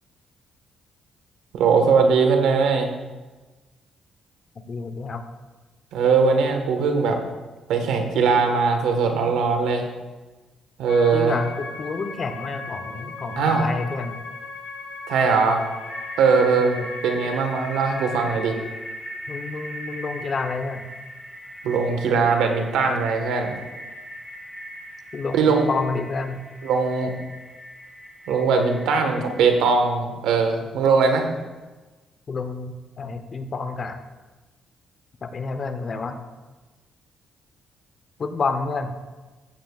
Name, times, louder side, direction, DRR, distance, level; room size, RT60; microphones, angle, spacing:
voice 1, 1.5-2.9 5.9-7.2 7.7-9.9 10.8-11.4 13.4-13.7 15.1-15.7 16.2-16.8 17.0-18.5 21.6-23.5 25.3-25.7 26.6-27.1 28.3-31.3, right 5 dB, 85° right, 5 dB, 1.4 m, -20 dB
voice 2, 4.5-5.2 11.1-14.2 16.6-16.9 19.3-20.9 25.1-26.4 32.3-34.0 35.2-36.2 38.2-39.0, left 4 dB, 45° left, 8 dB, 0.9 m, -29 dB
sound 1, 10.9-18.5, left 4 dB, 65° left, 2.7 m, -37 dB
sound 2, 15.5-29.7, equal, 20° right, 3.2 m, -39 dB
15.0 x 9.2 x 2.4 m, 1.2 s
cardioid pair, 90°, 0 cm